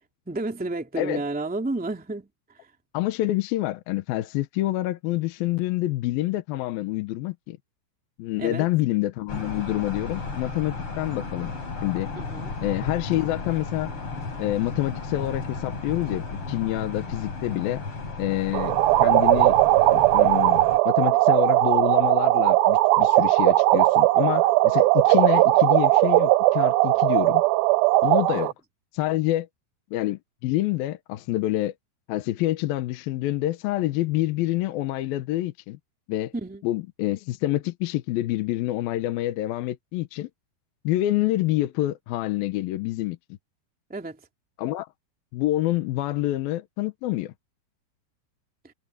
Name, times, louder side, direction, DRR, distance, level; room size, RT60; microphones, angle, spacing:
voice 1, 0.2-2.3 8.4-8.7 12.1-12.5 28.3-28.5 36.3-36.6 43.9-44.2, right 2 dB, 5° right, 1.6 m, -31 dB
voice 2, 2.9-7.6 8.2-11.5 11.8-12.1 12.6-13.9 14.4-17.8 18.2-19.6 19.9-27.4 28.0-28.5 28.9-29.5 29.9-31.7 32.1-35.8 36.1-36.3 36.6-40.3 40.8-43.2 44.6-44.9 45.3-47.3, left 16 dB, 75° left, 2.5 m, -27 dB
sound 1, 9.3-20.8, left 4 dB, 35° left, 4.7 m, -34 dB
sound 2, 18.5-28.5, right 17 dB, 80° right, 2.2 m, -19 dB
omnidirectional pair, 4.8 m